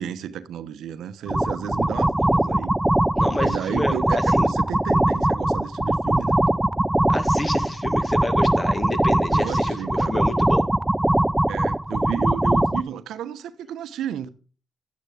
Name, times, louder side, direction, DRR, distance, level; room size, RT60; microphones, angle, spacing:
voice 1, 0.0-2.7 3.4-6.4 9.3-10.2 11.5-14.3, right 9 dB, 75° right, 1.0 m, -32 dB
sound 1, 1.3-12.8, right 1 dB, 10° right, 0.5 m, -21 dB
voice 2, 3.2-4.5 7.1-10.7, left 2 dB, 20° left, 1.8 m, -29 dB
11.5 x 9.2 x 5.0 m
cardioid pair, 90°, 0 cm